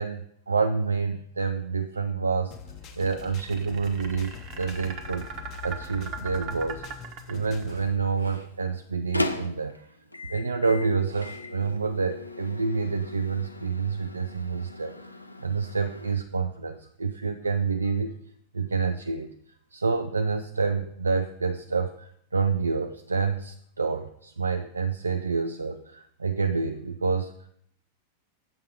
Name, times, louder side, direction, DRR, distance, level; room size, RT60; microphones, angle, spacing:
voice 1, 0.0-2.6 2.9-5.3 5.6-6.9 7.3-10.0 10.3-14.9 15.4-18.2 18.5-19.3 19.7-27.5, right 4 dB, 75° right, 7 dB, 0.4 m, -28 dB
sound 1, 2.5-7.9, left 7 dB, 35° left, 0.8 m, -43 dB
sound 2, 2.9-7.9, right 6 dB, 40° right, 1.1 m, -39 dB
Microwave oven, 7.9-16.2, left 2 dB, 85° left, 0.5 m, -38 dB
7.8 x 5.6 x 4.9 m, 0.70 s
figure-of-eight pair, 90°, 0 cm